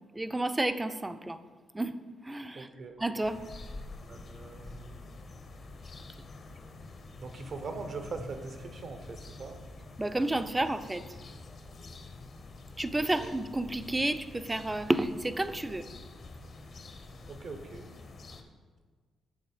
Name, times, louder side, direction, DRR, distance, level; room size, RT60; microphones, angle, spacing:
voice 1, 0.1-1.4 1.7-2.0 2.2-2.7 3.0-3.4 10.0-11.0 12.8-15.9, right 2 dB, 20° right, 11 dB, 0.4 m, -30 dB
voice 2, 2.5-2.9 4.1-5.0 7.2-9.6 13.2-13.3 17.3-17.8, right 4 dB, 60° right, 7 dB, 0.8 m, -41 dB
sound 1, 3.2-18.4, left 3 dB, 50° left, 0.7 m, -47 dB
7.2 x 3.8 x 4.9 m, 1.5 s
supercardioid pair, 60°, 0 cm